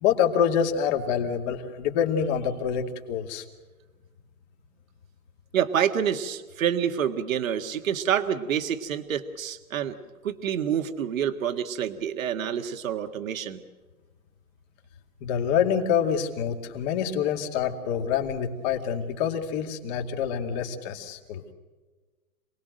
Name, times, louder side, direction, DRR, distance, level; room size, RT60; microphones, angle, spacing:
voice 1, 0.0-3.4 15.2-21.4, left 8 dB, 30° left, 4 dB, 2.4 m, -26 dB
voice 2, 5.5-10.0 10.2-13.6, right 9 dB, 65° right, 7 dB, 1.8 m, -27 dB
27.0 x 20.0 x 6.5 m, 1.3 s
hypercardioid pair, 155°, 44 cm